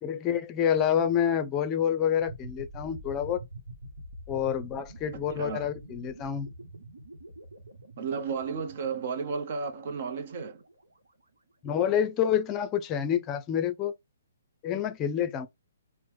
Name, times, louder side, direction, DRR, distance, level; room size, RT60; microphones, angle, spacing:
voice 1, 0.0-3.4 4.3-6.5 11.6-13.9 14.6-15.5, left 9 dB, 25° left, 0.5 m, -28 dB
sound 1, 2.2-11.1, right 1 dB, 90° right, 0.9 m, -46 dB
voice 2, 5.1-5.7 8.0-10.6, right 5 dB, 50° right, 0.6 m, -33 dB
4.3 x 2.1 x 3.1 m
hypercardioid pair, 135°, 0 cm